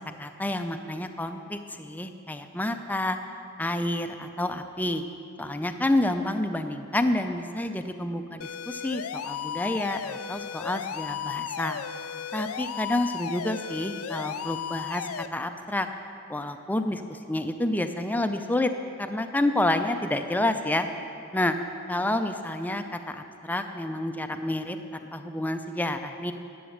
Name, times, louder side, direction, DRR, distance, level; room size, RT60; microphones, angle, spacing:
voice 1, 0.2-3.2 3.6-5.0 5.4-11.8 12.3-15.9 16.3-18.7 19.0-20.9 21.3-21.6 21.9-24.8 25.1-26.3, left 1 dB, 10° left, 7 dB, 0.4 m, -29 dB
sound 1, 8.4-15.3, left 8 dB, 85° left, 0.4 m, -35 dB
11.0 x 8.0 x 6.5 m, 2.5 s
head